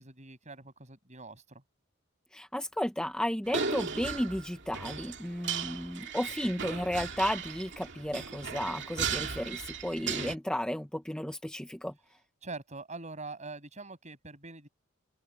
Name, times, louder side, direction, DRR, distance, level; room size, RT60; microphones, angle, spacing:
voice 1, 0.0-1.6 12.4-14.7, right 3 dB, 35° right, 7.6 m, -44 dB
voice 2, 2.3-11.9, left 1 dB, 5° left, 0.7 m, -33 dB
sound 1, 3.5-10.4, right 6 dB, 55° right, 2.4 m, -36 dB
open air
head